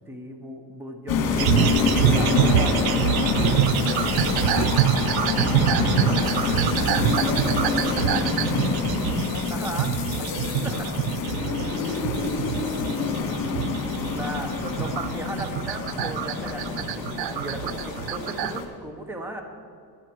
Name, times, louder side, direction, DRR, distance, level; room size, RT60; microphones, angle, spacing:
voice 1, 0.1-2.8 6.0-6.2 9.5-9.9 14.1-19.4, right 1 dB, 5° right, 4 dB, 0.8 m, -36 dB
sound 1, 1.1-18.7, left 5 dB, 60° left, 2.0 m, -26 dB
sound 2, 1.4-18.6, right 11 dB, 70° right, 0.5 m, -26 dB
voice 2, 2.6-7.1 7.5-14.6, left 3 dB, 40° left, 0 dB, 3.0 m, -39 dB
15.5 x 10.5 x 4.5 m, 2.4 s
cardioid pair, 170°, 40 cm